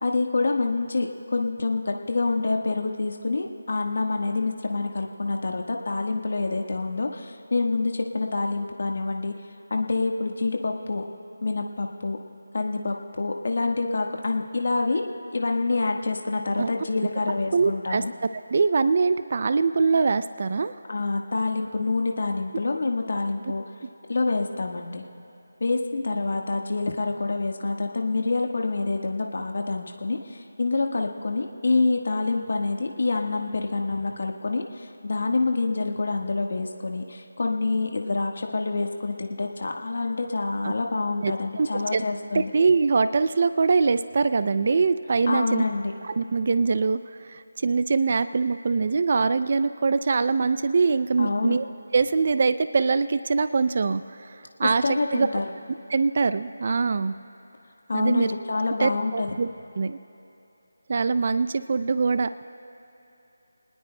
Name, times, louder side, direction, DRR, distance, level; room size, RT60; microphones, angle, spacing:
voice 1, 0.0-9.3 9.7-11.0 11.4-12.2 12.5-15.0 15.3-18.1 20.9-23.6 24.1-25.0 25.6-42.5 45.3-45.9 51.2-51.6 54.8-55.5 57.9-59.3, left 3 dB, 60° left, 2 dB, 1.3 m, -27 dB
voice 2, 17.5-18.0 18.5-20.7 40.6-40.7 41.2-42.0 42.3-45.6 46.0-47.0 47.2-51.6 51.9-54.0 54.6-55.3 55.9-57.1 57.9-58.3 58.8-59.5 59.8-60.0 60.9-62.3, right 4 dB, 40° right, 13 dB, 0.4 m, -23 dB
29.0 x 19.5 x 2.2 m, 2.9 s
figure-of-eight pair, 170°, 0 cm